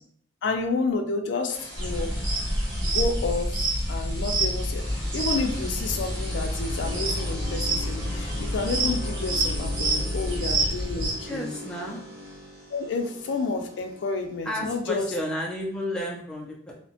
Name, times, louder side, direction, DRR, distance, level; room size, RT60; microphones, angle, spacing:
voice 1, 0.4-2.1 2.8-11.6 12.7-15.1, left 3 dB, 80° left, 5 dB, 0.4 m, -30 dB
sound 1, 1.5-16.0, left 1 dB, 20° right, 0.9 m, -41 dB
sound 2, 1.8-11.1, right 1 dB, 80° right, 1.1 m, -27 dB
voice 2, 11.3-12.0 14.4-16.7, left 1 dB, 5° left, -3 dB, 0.3 m, -32 dB
2.7 x 2.1 x 2.7 m, 0.63 s
head